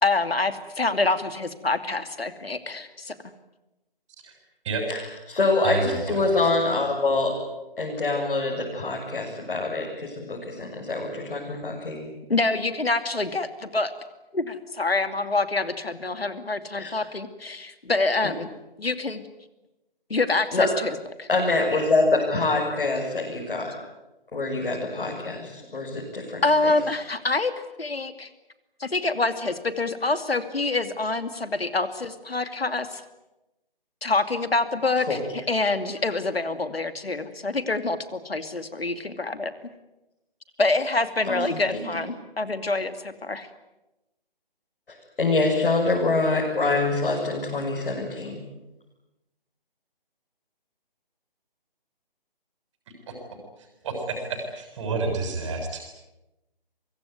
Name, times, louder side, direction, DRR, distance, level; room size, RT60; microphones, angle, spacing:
voice 1, 0.0-3.3 12.3-13.9 14.3-18.5 18.8-19.2 20.1-21.3 26.4-27.5 27.8-28.3 28.8-33.0 34.0-39.5 40.6-43.5, left 3 dB, 85° left, 10 dB, 2.7 m, -26 dB
voice 2, 4.9-7.4 7.8-12.1 16.7-16.9 20.5-20.7 21.3-23.8 24.3-26.7 35.1-35.2 41.3-41.8 45.2-48.4, left 3 dB, 65° left, -3 dB, 7.6 m, -25 dB
voice 3, 5.6-6.2 53.1-53.2 53.8-55.8, right 3 dB, 30° right, 3 dB, 7.0 m, -29 dB
24.5 x 22.0 x 9.5 m, 0.98 s
figure-of-eight pair, 155°, 29 cm